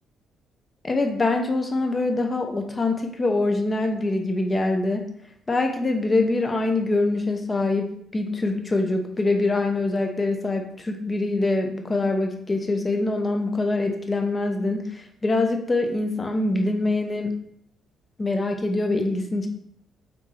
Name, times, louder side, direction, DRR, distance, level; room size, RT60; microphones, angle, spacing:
voice 1, 0.8-5.0 5.5-17.4 18.2-19.5, left 2 dB, 25° left, 4 dB, 0.7 m, -24 dB
3.7 x 3.5 x 3.2 m, 0.70 s
cardioid pair, 90°, 0 cm